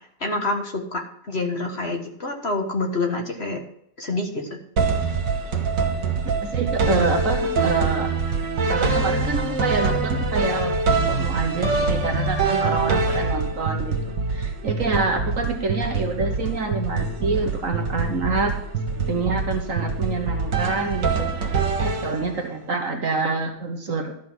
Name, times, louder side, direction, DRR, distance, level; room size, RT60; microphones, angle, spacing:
voice 1, 0.2-1.0 1.3-3.6 4.0-4.6, left 2 dB, 40° left, 2 dB, 1.5 m, -27 dB
sound 1, 4.8-22.6, right 4 dB, 80° right, 2.2 m, -24 dB
voice 2, 6.4-8.1 8.7-10.7 11.1-18.5 18.9-24.1, right 3 dB, 50° right, 4 dB, 1.5 m, -27 dB
12.5 x 6.1 x 6.1 m, 0.71 s
omnidirectional pair, 1.9 m